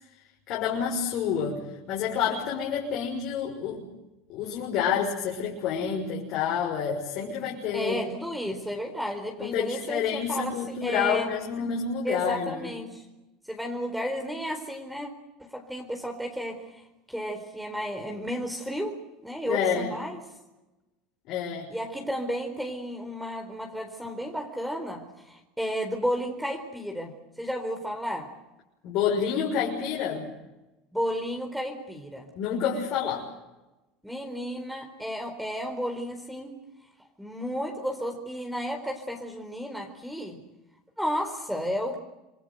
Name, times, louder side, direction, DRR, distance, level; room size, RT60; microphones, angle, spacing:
voice 1, 0.5-1.6 1.9-3.8 4.3-8.0 9.4-12.7 19.5-19.9 21.3-21.7 28.8-30.3 32.4-33.3, left 7 dB, 60° left, -2 dB, 6.3 m, -28 dB
voice 2, 7.7-11.3 12.0-13.0 13.5-15.1 15.4-19.0 19.2-20.2 21.7-28.3 30.9-32.3 34.0-36.6 37.2-40.4 41.0-42.0, equal, 5° right, 4 dB, 4.4 m, -33 dB
27.5 x 22.0 x 8.1 m, 1.0 s
hypercardioid pair, 90°, 0 cm